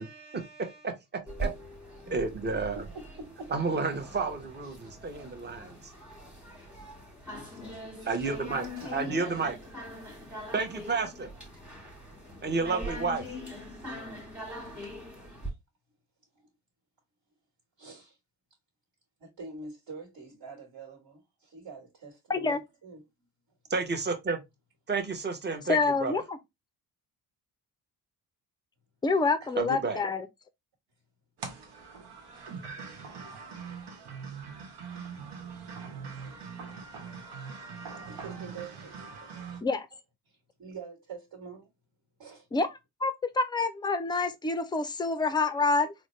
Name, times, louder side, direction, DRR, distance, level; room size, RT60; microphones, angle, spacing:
voice 1, 0.0-0.9 2.0-2.2 2.7-3.7 4.6-4.9 7.3-8.4 8.8-9.5 11.7-11.9 14.8-15.0 16.3-16.5 17.8-18.2 19.2-23.1 29.4-29.5 32.2-32.6 38.1-39.0 40.3-41.7 42.2-42.5, right 4 dB, 60° right, 1.5 m, -46 dB
voice 2, 0.8-1.5 2.1-2.8 3.5-5.8 8.0-8.7 8.9-9.5 10.5-11.3 12.4-13.3 23.7-24.4 24.9-26.1 29.6-30.0, right 4 dB, 25° right, 0.9 m, -31 dB
sound 1, 1.3-15.5, equal, 5° right, 1.2 m, -42 dB
voice 3, 22.3-22.6 25.7-26.4 29.0-30.3 39.6-39.9 42.5-42.7 43.0-45.9, left 3 dB, 10° left, 0.4 m, -27 dB
sound 2, 31.4-39.6, right 5 dB, 90° right, 1.0 m, -42 dB
3.8 x 2.2 x 3.1 m
cardioid pair, 100°, 39 cm